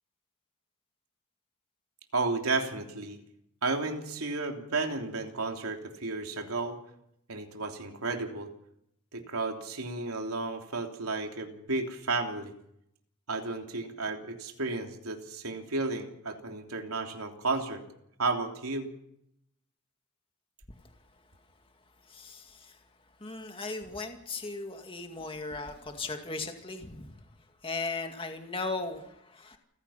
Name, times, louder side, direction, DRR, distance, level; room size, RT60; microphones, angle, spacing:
voice 1, 2.1-3.2 3.6-6.8 7.3-8.5 9.1-12.5 13.3-17.8 18.2-18.9, right 3 dB, 85° right, 3 dB, 3.2 m, -33 dB
voice 2, 20.8-29.6, left 3 dB, 25° left, 4 dB, 2.1 m, -38 dB
29.0 x 15.5 x 5.8 m, 0.76 s
head